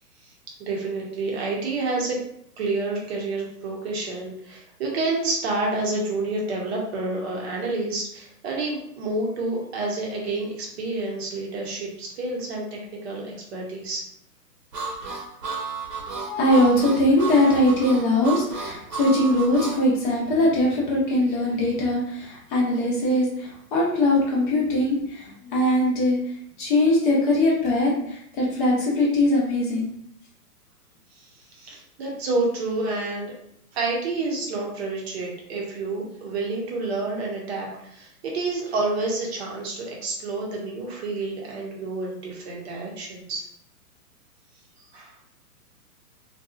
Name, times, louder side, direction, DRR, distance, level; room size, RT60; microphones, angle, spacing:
voice 1, 0.6-2.2 2.6-14.0 31.2-31.3 31.5-33.3 33.7-43.5 44.9-45.1, right 3 dB, 40° right, -2 dB, 0.7 m, -29 dB
Harmonica, 14.7-19.8, right 4 dB, 80° right, 0.9 m, -32 dB
voice 2, 16.2-29.9, left 1 dB, 35° left, -4 dB, 0.7 m, -21 dB
2.7 x 2.3 x 2.4 m, 0.70 s
hypercardioid pair, 135°, 48 cm